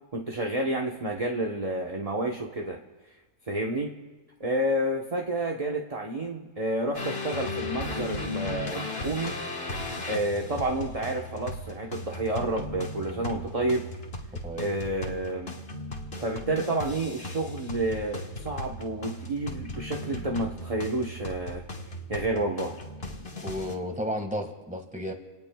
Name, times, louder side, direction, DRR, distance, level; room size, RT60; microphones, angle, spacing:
voice 1, 0.1-2.8 3.5-3.9 4.4-9.4 10.1-13.9 14.6-15.6 16.2-21.6 22.1-22.7, right 1 dB, 25° right, 0 dB, 1.0 m, -30 dB
sound 1, 6.9-23.7, left 2 dB, 40° left, 1.8 m, -37 dB
voice 2, 23.4-25.1, equal, 5° right, 4 dB, 1.6 m, -33 dB
29.0 x 19.0 x 2.3 m, 1.2 s
omnidirectional pair, 1.7 m